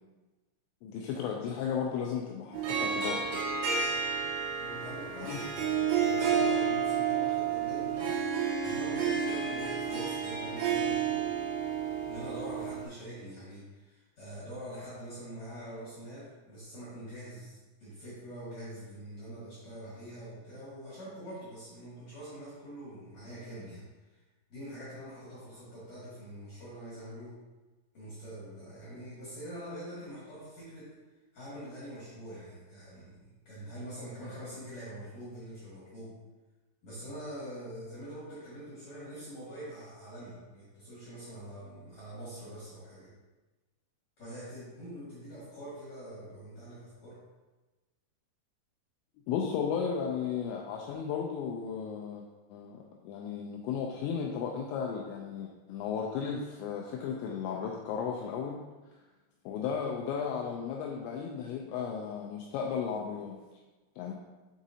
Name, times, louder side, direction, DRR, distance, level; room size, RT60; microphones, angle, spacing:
voice 1, 0.8-3.5 5.2-5.4 49.3-52.2 52.5-58.6 59.5-63.6 64.0-64.1, left 7 dB, 90° left, 0 dB, 2.5 m, -35 dB
Harp, 2.5-12.9, right 6 dB, 80° right, 3.4 m, -31 dB
voice 2, 4.6-8.2 8.6-11.3 12.1-24.2 24.5-27.4 27.9-31.0 31.3-36.2 36.8-43.1 44.2-47.2, equal, 55° left, -10 dB, 2.1 m, -44 dB
7.2 x 4.9 x 2.7 m, 1.2 s
omnidirectional pair, 5.7 m